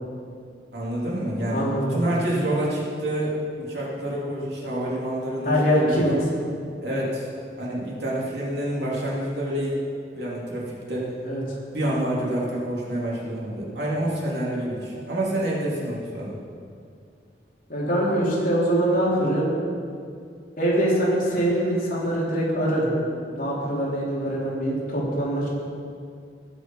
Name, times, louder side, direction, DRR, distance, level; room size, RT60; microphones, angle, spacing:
voice 1, 0.7-6.2 6.8-7.3 7.6-9.7 10.1-11.1 11.7-16.4, right 1 dB, 65° right, -5 dB, 3.2 m, -28 dB
voice 2, 1.5-2.1 5.5-6.1 11.2-11.4 17.7-19.5 20.6-22.9 23.3-25.5, equal, 50° left, -6 dB, 3.6 m, -23 dB
19.0 x 6.5 x 5.5 m, 2.3 s
head